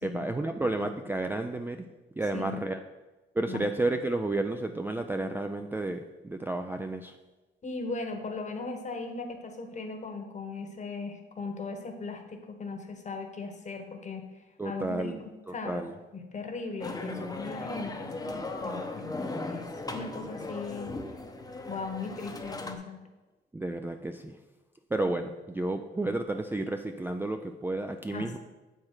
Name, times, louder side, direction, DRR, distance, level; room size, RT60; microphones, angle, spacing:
voice 1, 0.0-1.9 2.2-2.8 3.4-7.2 14.6-15.2 15.5-15.9 23.5-24.4 24.9-28.4, right 2 dB, 10° right, 5 dB, 0.4 m, -31 dB
voice 2, 7.6-14.3 14.6-15.9 16.1-19.1 19.5-20.9 21.7-23.0 28.1-28.4, left 3 dB, 35° left, 5 dB, 1.2 m, -38 dB
sound 1, 16.8-22.8, left 2 dB, 20° left, 0.8 m, -37 dB
7.4 x 4.5 x 4.9 m, 1.1 s
cardioid pair, 90°, 20 cm